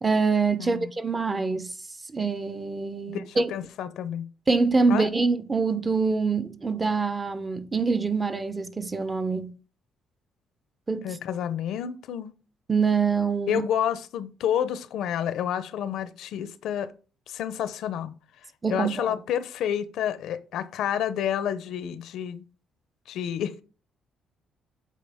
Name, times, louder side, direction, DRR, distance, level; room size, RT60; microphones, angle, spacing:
voice 1, 0.0-1.7 2.1-3.5 4.5-9.6 10.9-11.2 12.7-13.6 18.6-19.1, right 4 dB, 20° right, 0.4 m, -25 dB
voice 2, 0.6-0.9 3.1-4.3 4.9-5.1 11.0-12.3 13.5-16.9 17.3-18.1 18.7-22.4 23.1-23.6, left 9 dB, 75° left, 0.5 m, -29 dB
8.3 x 3.8 x 3.5 m
cardioid pair, 150°, 0 cm